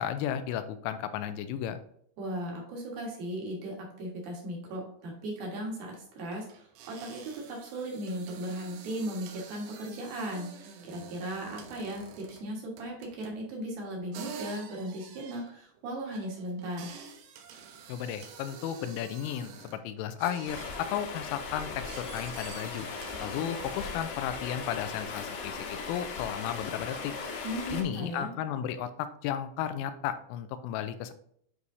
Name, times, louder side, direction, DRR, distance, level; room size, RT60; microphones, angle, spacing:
voice 1, 0.0-1.8 17.9-22.9 23.2-27.1 27.7-31.1, left 9 dB, 85° left, 10 dB, 3.1 m, -34 dB
voice 2, 2.2-16.9 27.4-28.3, right 1 dB, 60° right, -2 dB, 2.8 m, -37 dB
sound 1, 5.2-5.3 5.5-5.7 6.2-12.5 12.8-13.4 14.1-19.8 20.2-20.8 21.2-24.2, right 6 dB, 85° right, 3.6 m, -48 dB
Stream, 20.5-27.8, left 5 dB, 70° left, 2.7 m, -38 dB
11.0 x 4.8 x 2.7 m, 0.67 s
omnidirectional pair, 5.8 m